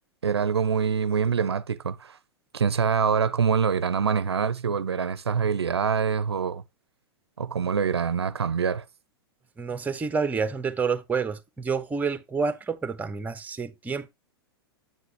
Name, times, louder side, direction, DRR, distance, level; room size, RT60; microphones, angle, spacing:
voice 1, 0.2-2.2 2.5-6.6 7.4-8.8, right 6 dB, 90° right, 0.5 m, -25 dB
voice 2, 9.6-14.1, right 5 dB, 10° right, 0.8 m, -28 dB
7.9 x 7.3 x 2.9 m
hypercardioid pair, 105°, 13 cm